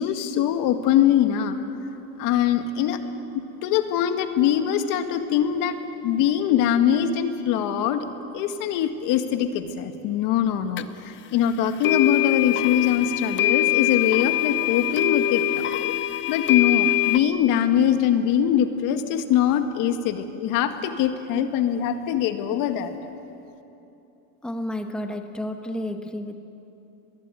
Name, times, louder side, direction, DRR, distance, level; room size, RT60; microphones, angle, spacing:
voice 1, 0.0-1.6 2.2-3.0 3.6-5.8 6.0-8.1 8.3-15.6 16.3-23.1, left 10 dB, 65° left, 7 dB, 2.0 m, -22 dB
sound 1, 10.8-10.9 11.8-17.2, left 13 dB, 35° left, 0.9 m, -23 dB
voice 2, 24.4-26.4, left 1 dB, ahead, 6 dB, 1.3 m, -31 dB
25.5 x 21.5 x 9.3 m, 2.9 s
cardioid pair, 130°, 35 cm